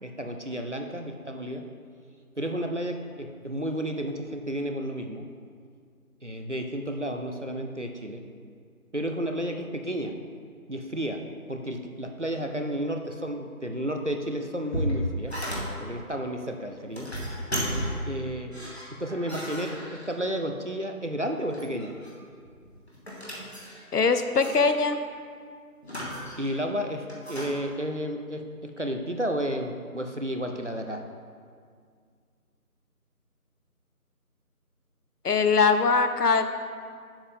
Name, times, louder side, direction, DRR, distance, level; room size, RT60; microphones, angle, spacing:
voice 1, 0.0-1.7 2.4-5.3 6.2-8.3 8.9-10.2 10.7-15.3 15.8-17.1 18.1-18.5 19.0-21.9 26.4-31.0, equal, 55° right, 4 dB, 0.5 m, -32 dB
sound 1, 14.4-16.0 16.8-18.2 18.5-20.4 21.3-22.2 22.5-24.1 24.4-24.6 25.8-26.6 27.1-27.5, equal, 45° left, 1.2 m, -34 dB
voice 2, 23.9-25.0 35.2-36.5, left 4 dB, 85° left, 8 dB, 0.7 m, -22 dB
7.2 x 7.0 x 3.5 m, 2.1 s
figure-of-eight pair, 175°, 45 cm